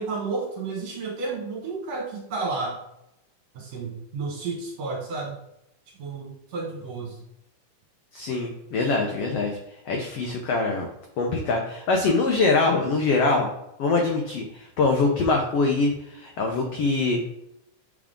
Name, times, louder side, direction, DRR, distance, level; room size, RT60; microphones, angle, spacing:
voice 1, 0.0-2.8 3.6-5.4 6.0-7.2, right 3 dB, 65° right, -1 dB, 2.0 m, -31 dB
voice 2, 8.1-9.5 9.9-10.9 11.2-13.5 13.8-17.2, left 3 dB, 85° left, 1 dB, 1.3 m, -23 dB
8.7 x 3.7 x 3.7 m, 0.84 s
omnidirectional pair, 3.8 m